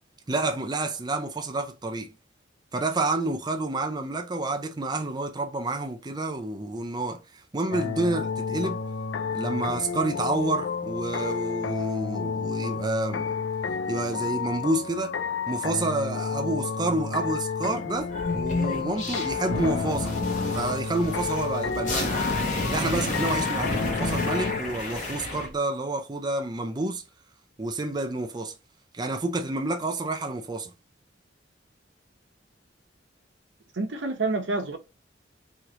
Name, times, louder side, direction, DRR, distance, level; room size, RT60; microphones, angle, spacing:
voice 1, 0.3-2.1 2.7-8.8 9.3-13.4 13.9-15.2 15.5-20.2 20.5-22.2 22.7-27.0 27.6-28.5 28.9-30.7, right 2 dB, 25° right, 0.5 m, -29 dB
sound 1, 7.7-24.6, left 6 dB, 80° left, 0.4 m, -31 dB
sound 2, 18.1-25.5, left 2 dB, 45° left, 1.2 m, -30 dB
voice 2, 33.7-34.8, right 3 dB, 85° right, 0.9 m, -28 dB
3.1 x 3.0 x 3.8 m
head